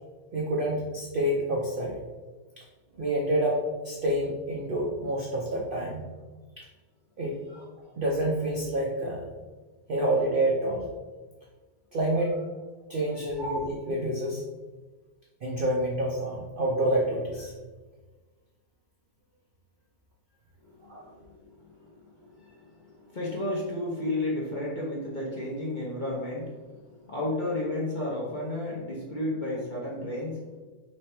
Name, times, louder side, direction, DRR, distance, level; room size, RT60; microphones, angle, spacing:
voice 1, 0.3-1.9 3.0-6.1 6.6-6.7 7.2-7.7 8.0-9.3 9.9-10.9 11.9-12.4 12.9-14.4 15.4-17.5 20.9-21.0, right 1 dB, 80° right, -2 dB, 0.4 m, -28 dB
voice 2, 20.6-30.5, left 1 dB, 45° left, -4 dB, 0.6 m, -33 dB
3.3 x 3.2 x 4.4 m, 1.3 s
omnidirectional pair, 1.7 m